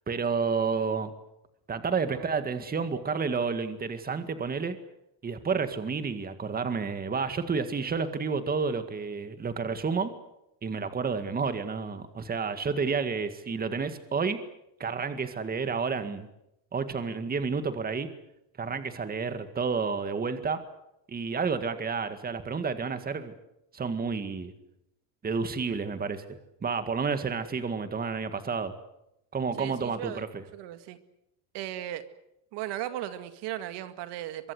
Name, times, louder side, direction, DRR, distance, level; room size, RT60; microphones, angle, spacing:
voice 1, 0.1-1.1 1.7-4.8 5.2-10.1 10.6-14.4 14.8-16.3 16.7-18.1 18.6-20.6 21.1-23.3 23.7-24.5 25.2-26.2 26.6-28.7 29.3-30.4, right 5 dB, 20° right, 9 dB, 2.0 m, -30 dB
voice 2, 29.6-30.2 30.5-31.0 31.5-32.0 32.5-34.5, right 13 dB, 70° right, 10 dB, 2.2 m, -36 dB
24.0 x 23.5 x 7.9 m, 0.84 s
cardioid pair, 135°, 43 cm